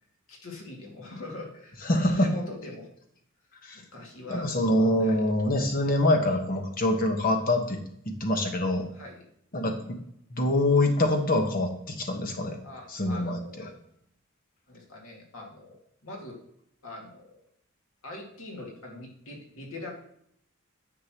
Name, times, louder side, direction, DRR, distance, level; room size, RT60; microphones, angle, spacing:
voice 1, 0.3-1.8 2.2-2.9 3.7-4.5 5.0-5.2 8.9-9.3 12.6-13.8 14.7-16.4 16.8-17.4 18.0-19.9, left 2 dB, 75° left, 0 dB, 2.0 m, -42 dB
voice 2, 1.9-2.3 3.6-3.8 4.3-7.8 8.2-8.9 9.5-10.0 10.3-12.6 12.9-13.4, left 1 dB, 45° left, 4 dB, 1.2 m, -25 dB
9.9 x 6.7 x 2.9 m, 0.70 s
head